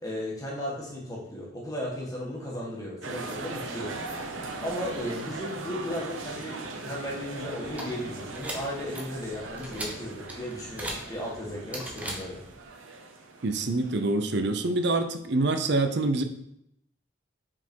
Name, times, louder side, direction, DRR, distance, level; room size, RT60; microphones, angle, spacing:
voice 1, 0.0-4.0 4.6-12.4, left 1 dB, 20° left, -4 dB, 1.8 m, -35 dB
sound 1, 3.0-14.8, right 3 dB, 90° right, 0.9 m, -40 dB
sound 2, 7.6-12.7, right 1 dB, 5° right, 0.9 m, -40 dB
voice 2, 13.4-16.2, right 2 dB, 60° right, 8 dB, 0.6 m, -26 dB
5.8 x 4.5 x 4.6 m, 0.78 s
head